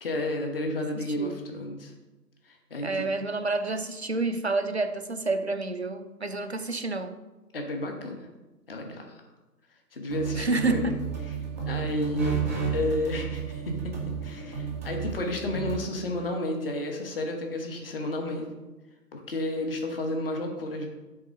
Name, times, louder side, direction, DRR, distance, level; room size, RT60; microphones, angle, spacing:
voice 1, 0.0-1.9 2.4-3.0 7.5-8.2 8.7-9.0 9.9-10.9 11.7-12.4 12.7-13.9 14.2-18.5 19.1-20.9, left 1 dB, 35° left, 3 dB, 1.1 m, -31 dB
voice 2, 1.0-1.4 2.8-7.2 10.4-11.0, right 3 dB, 45° right, 8 dB, 0.4 m, -29 dB
sound 1, 10.1-15.8, right 7 dB, 10° right, 0.8 m, -32 dB
8.4 x 3.6 x 6.2 m, 1.1 s
figure-of-eight pair, 155°, 49 cm